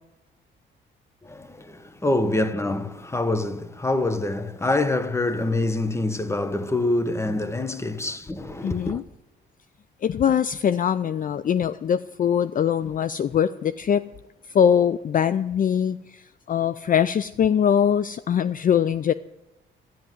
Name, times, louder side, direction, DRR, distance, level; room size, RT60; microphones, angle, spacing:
voice 1, 1.2-9.0, left 2 dB, 15° left, 1.2 m, -25 dB
voice 2, 8.6-9.0 10.0-14.0 14.5-19.1, left 8 dB, 45° left, 0.5 m, -22 dB
13.5 x 11.0 x 9.3 m
cardioid pair, 90°, 20 cm